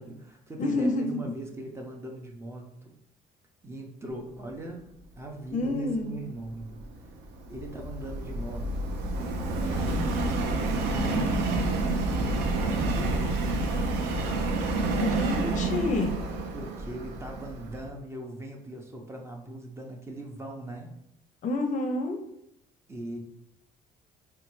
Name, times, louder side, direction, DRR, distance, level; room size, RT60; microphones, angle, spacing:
voice 1, 0.0-3.0 3.6-6.8 7.5-8.9 9.5-11.5 12.0-13.5 16.5-21.0 22.9-23.2, right 2 dB, 15° right, 1 dB, 0.6 m, -40 dB
voice 2, 0.6-1.3 5.5-6.1 15.0-16.2 21.4-22.2, left 2 dB, 50° left, 4 dB, 0.5 m, -28 dB
Subway metro underground, 6.6-17.9, right 2 dB, 80° right, 0.5 m, -29 dB
3.8 x 2.2 x 3.0 m, 0.78 s
cardioid pair, 110°, 17 cm